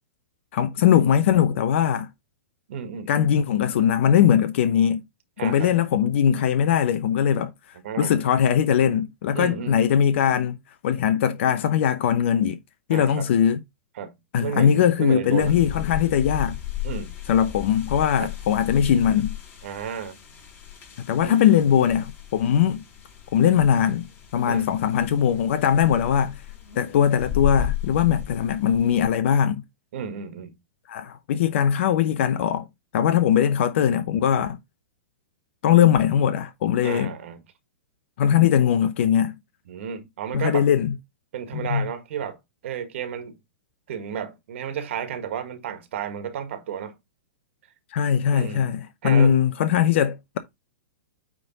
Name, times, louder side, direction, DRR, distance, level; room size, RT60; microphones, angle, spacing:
voice 1, 0.5-2.1 3.1-5.0 5.4-7.5 8.0-10.6 10.8-12.6 12.9-13.6 14.3-16.6 17.3-19.4 21.1-22.8 23.3-26.4 26.8-29.6 30.9-32.7 32.9-34.6 35.6-37.1 38.2-39.3 40.3-40.9 41.5-41.9 47.9-50.4, left 9 dB, 60° left, 0.7 m, -20 dB
voice 2, 2.7-3.2 5.4-5.7 7.8-8.1 9.3-9.8 12.9-13.3 14.0-14.1 14.4-15.5 16.8-17.1 18.2-18.3 19.6-20.2 21.2-21.6 24.4-24.7 29.9-30.5 36.8-37.4 39.7-40.7 41.3-42.4 42.6-43.4 43.9-46.9 48.3-48.7 49.0-49.4, right 8 dB, 60° right, 1.6 m, -32 dB
sound 1, 15.4-29.1, left 11 dB, 30° left, 4.6 m, -35 dB
9.2 x 3.7 x 3.9 m
hypercardioid pair, 120°, 7 cm